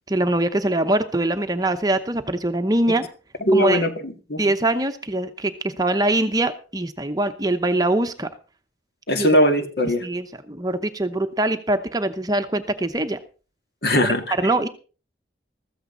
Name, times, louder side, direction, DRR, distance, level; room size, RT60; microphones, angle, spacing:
voice 1, 0.1-3.1 3.5-3.9 4.4-8.3 9.2-9.4 10.0-13.2 13.9-14.0 14.4-14.7, right 1 dB, 20° right, 8 dB, 0.8 m, -23 dB
voice 2, 3.5-4.4 9.1-10.0 13.8-14.2, equal, 60° left, 6 dB, 2.0 m, -20 dB
14.5 x 14.0 x 3.9 m, 0.36 s
head